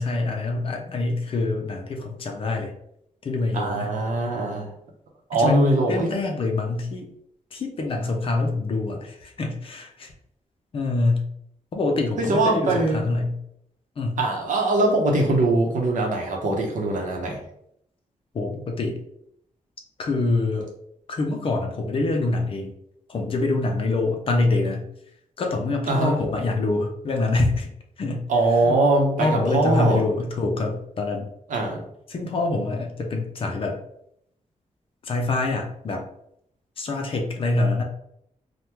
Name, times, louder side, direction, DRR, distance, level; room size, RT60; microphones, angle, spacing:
voice 1, 0.0-2.7 3.2-3.9 5.4-7.1 7.5-10.1 10.7-11.3 11.7-13.4 14.0-14.2 18.3-19.0 20.0-20.7 21.1-22.7 23.1-24.8 25.4-27.7 28.0-28.3 28.6-28.8 29.2-31.3 32.1-33.8 35.0-36.1 36.8-37.8, left 2 dB, 40° left, 3 dB, 0.5 m, -25 dB
voice 2, 3.5-4.7 5.3-6.1 12.2-13.0 14.2-17.4 25.9-26.2 28.3-30.0 31.5-31.8, right 2 dB, 75° right, 0 dB, 0.7 m, -22 dB
3.4 x 2.1 x 2.9 m, 0.75 s
wide cardioid pair, 175°, 14 cm